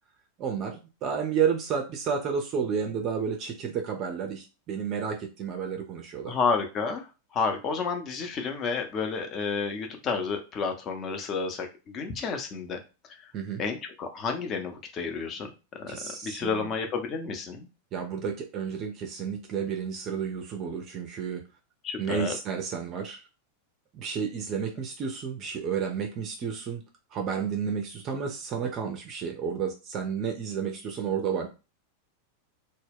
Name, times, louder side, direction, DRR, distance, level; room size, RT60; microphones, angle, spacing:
voice 1, 0.4-6.4 13.3-13.6 15.9-16.7 17.9-21.4 22.0-23.2 23.9-26.8 27.1-31.5, right 7 dB, 35° right, 3 dB, 0.4 m, -31 dB
voice 2, 6.3-7.1 7.3-12.8 13.6-17.7 21.8-22.4, left 5 dB, 30° left, 4 dB, 0.5 m, -31 dB
2.1 x 2.0 x 3.3 m, 0.30 s
figure-of-eight pair, 90°, 0 cm